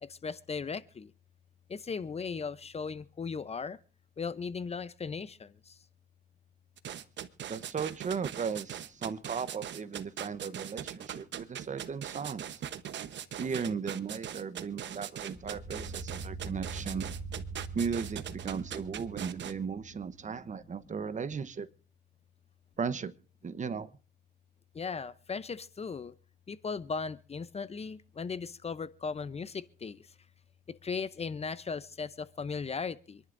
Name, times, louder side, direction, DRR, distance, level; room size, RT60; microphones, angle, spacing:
voice 1, 0.0-1.1 1.7-3.8 4.2-5.8 24.7-26.1 26.5-30.1 30.7-33.2, left 5 dB, 30° left, 15 dB, 0.7 m, -37 dB
sound 1, 6.8-19.5, right 10 dB, 65° right, 1.0 m, -40 dB
voice 2, 7.5-12.6 13.4-17.1 17.7-21.7 22.8-23.1 23.4-23.9, right 6 dB, 40° right, 14 dB, 0.9 m, -36 dB
sound 2, 15.3-20.5, right 4 dB, 5° right, 7.8 m, -43 dB
27.0 x 11.0 x 2.6 m, 0.39 s
cardioid pair, 90°, 20 cm